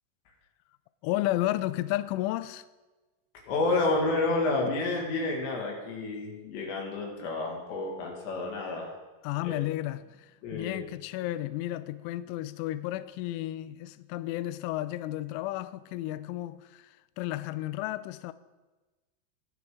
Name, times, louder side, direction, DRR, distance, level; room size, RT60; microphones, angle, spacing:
voice 1, 1.0-2.6 9.2-18.3, left 15 dB, 85° left, 2.8 m, -33 dB
voice 2, 3.5-8.9 9.4-9.6 10.4-10.8, left 2 dB, 65° left, 3.9 m, -30 dB
21.0 x 7.5 x 3.7 m
omnidirectional pair, 5.9 m